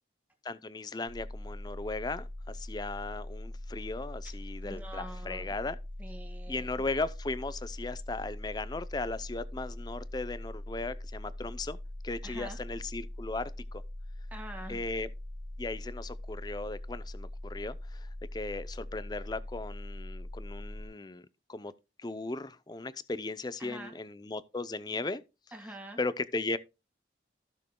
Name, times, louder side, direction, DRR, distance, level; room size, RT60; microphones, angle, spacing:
voice 1, 0.4-5.8 6.5-11.8 12.0-13.8 14.7-15.1 15.6-21.7 22.0-25.2 26.0-26.6, left 3 dB, 20° left, 0.5 m, -37 dB
sound 1, 1.1-20.9, left 1 dB, 85° right, 1.4 m, -42 dB
voice 2, 4.6-5.6 6.0-6.7 12.2-12.6 14.3-14.8 23.6-24.0 25.5-26.0, right 1 dB, 10° right, 1.9 m, -45 dB
15.0 x 6.4 x 2.2 m
head